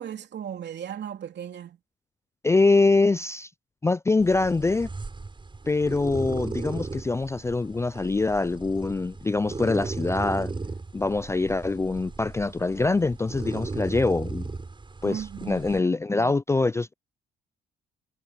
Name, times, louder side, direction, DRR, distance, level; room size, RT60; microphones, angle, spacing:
voice 1, 0.0-1.8 15.0-15.6 16.2-16.4, right 9 dB, 60° right, 2.8 m, -36 dB
voice 2, 2.4-3.5 3.8-4.9 5.7-10.5 10.9-14.5 15.0-16.9, left 3 dB, 15° left, 0.3 m, -24 dB
sound 1, 4.2-15.8, right 3 dB, 25° right, 6.9 m, -36 dB
cardioid pair, 90°, 20 cm